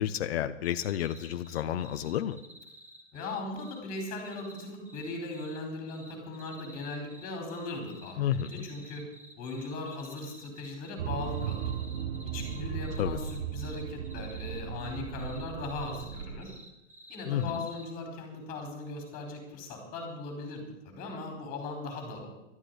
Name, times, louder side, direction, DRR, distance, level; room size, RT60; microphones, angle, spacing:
voice 1, 0.0-2.4 8.2-8.6 13.0-13.2 17.3-17.5, left 10 dB, 55° left, 9 dB, 0.9 m, -30 dB
sound 1, 0.6-3.8 4.2-5.6 5.9-10.9 11.2-17.9, equal, 5° right, 1.5 m, -52 dB
voice 2, 3.1-9.0 9.4-11.6 12.2-16.5 17.1-22.4, left 2 dB, 25° left, 4 dB, 4.6 m, -39 dB
sound 2, 11.0-16.4, right 8 dB, 55° right, 1.3 m, -36 dB
12.5 x 8.8 x 9.7 m, 0.90 s
hypercardioid pair, 145°, 37 cm